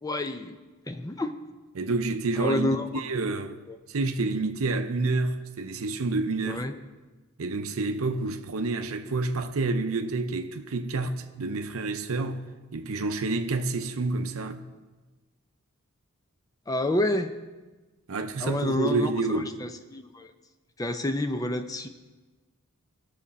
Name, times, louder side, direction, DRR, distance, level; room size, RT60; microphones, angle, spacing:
voice 1, 0.0-0.6 0.9-1.4 2.4-2.9 3.3-3.4 3.7-3.8 6.4-6.7 16.7-17.3 18.4-20.3 20.8-21.9, left 1 dB, 15° left, 0.5 m, -29 dB
voice 2, 1.7-3.6 3.9-6.6 7.4-12.4 12.7-14.6 18.1-19.6, right 3 dB, 70° right, 0.7 m, -29 dB
16.5 x 6.6 x 4.2 m
head